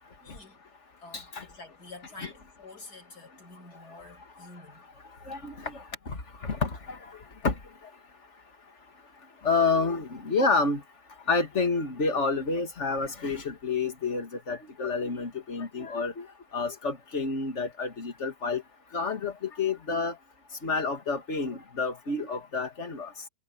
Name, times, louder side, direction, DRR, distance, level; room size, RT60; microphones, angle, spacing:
voice 1, 0.2-0.6 1.0-4.8, left 2 dB, 65° left, 5.9 m, -48 dB
voice 2, 1.1-1.4 2.2-2.3 5.3-7.0 7.4-7.6 9.4-10.8 11.3-16.3 16.5-18.6 18.9-20.2 20.6-23.1, left 4 dB, 40° left, 2.4 m, -29 dB
omnidirectional pair, 1.9 m